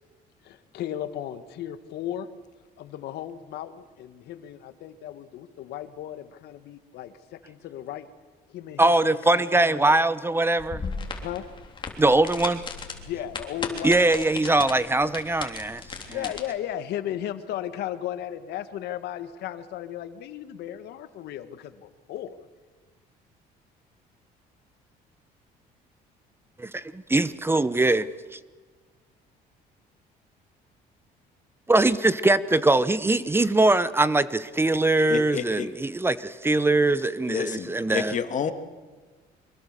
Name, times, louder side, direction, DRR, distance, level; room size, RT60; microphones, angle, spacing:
voice 1, 0.4-2.3 2.8-8.1 8.5-10.0 11.2-11.5 13.0-14.3 16.1-22.4, left 11 dB, 75° left, 11 dB, 1.6 m, -35 dB
voice 2, 8.8-10.8 12.0-12.6 13.8-15.8 16.1-16.2 26.6-28.1 28.3-28.4 31.7-38.2, right 2 dB, 15° right, 15 dB, 0.8 m, -22 dB
sound 1, 10.6-16.4, left 4 dB, 30° left, 3.4 m, -37 dB
voice 3, 35.1-35.7 37.3-38.5, left 7 dB, 45° left, 8 dB, 2.0 m, -29 dB
24.5 x 21.5 x 6.7 m, 1.4 s
cardioid pair, 110°, 17 cm